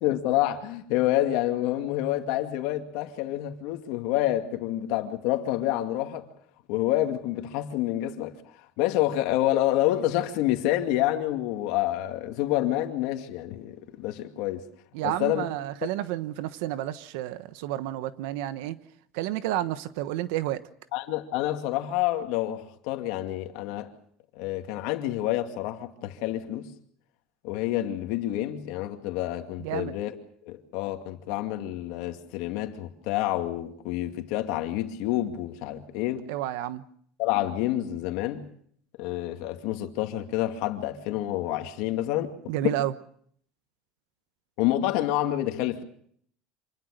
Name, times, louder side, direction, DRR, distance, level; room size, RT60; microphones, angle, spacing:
voice 1, 0.0-6.3 6.7-8.4 8.8-14.7 15.0-15.4 20.9-23.9 24.4-26.7 27.4-30.1 30.4-36.3 37.2-38.5 39.0-42.3 42.6-42.7 44.6-45.8, left 14 dB, 65° left, 2.4 m, -28 dB
voice 2, 14.9-18.8 19.1-20.6 29.6-29.9 36.3-36.8 42.5-42.9, right 13 dB, 75° right, 1.1 m, -30 dB
26.5 x 21.0 x 6.6 m
cardioid pair, 165°, 0 cm